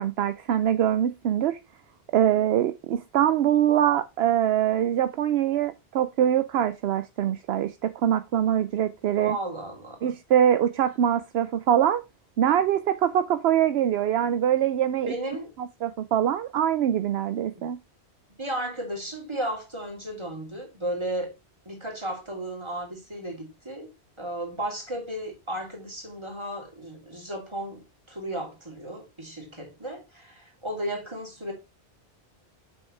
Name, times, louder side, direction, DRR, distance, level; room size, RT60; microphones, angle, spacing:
voice 1, 0.0-1.6 2.1-9.4 10.0-12.0 12.4-15.1 15.8-17.8, right 10 dB, 75° right, 0.8 m, -23 dB
voice 2, 9.2-10.1 15.0-15.5 17.5-17.7 18.4-21.3 21.6-23.9 24.2-31.5, right 1 dB, 25° right, 3.1 m, -34 dB
7.6 x 6.4 x 3.2 m
omnidirectional pair, 1.1 m